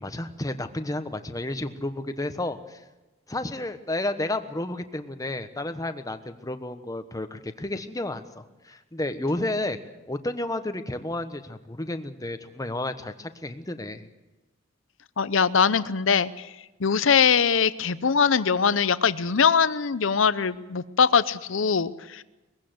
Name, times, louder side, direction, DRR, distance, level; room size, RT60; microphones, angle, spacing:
voice 1, 0.0-2.8 3.3-9.8 10.1-14.1, left 2 dB, 20° left, 9 dB, 1.2 m, -31 dB
voice 2, 15.2-16.5 16.8-22.2, left 6 dB, 75° left, 16 dB, 0.7 m, -22 dB
21.5 x 15.5 x 7.9 m, 1.1 s
head